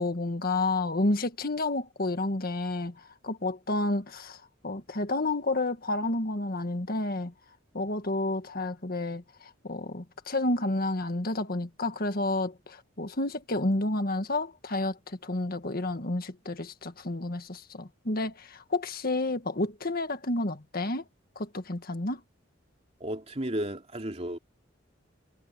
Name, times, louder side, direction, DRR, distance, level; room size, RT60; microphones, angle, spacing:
voice 1, 0.0-2.9 3.2-4.4 4.6-7.3 7.7-9.2 9.6-15.0 15.2-21.0 21.4-22.2, left 2 dB, 50° left, 1.7 m, -30 dB
voice 2, 23.0-24.4, right 1 dB, 35° right, 3.1 m, -33 dB
head